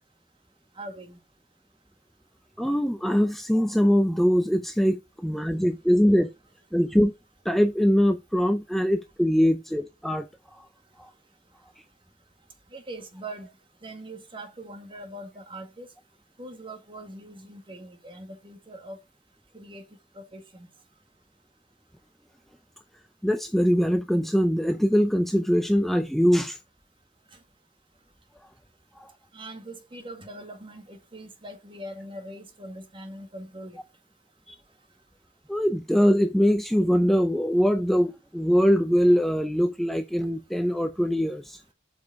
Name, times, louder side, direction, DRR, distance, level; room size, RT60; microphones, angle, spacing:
voice 1, 0.8-1.2 12.7-13.5 13.8-15.9 16.4-19.0 19.5-19.8 20.1-20.7 27.3-27.4 29.3-33.8, right 1 dB, 30° right, 1.9 m, -42 dB
voice 2, 2.6-6.3 6.7-7.1 7.4-10.7 11.0-11.1 23.2-26.6 29.0-29.1 34.5-34.6 35.5-41.6, equal, ahead, 0.5 m, -22 dB
8.1 x 5.2 x 5.2 m
head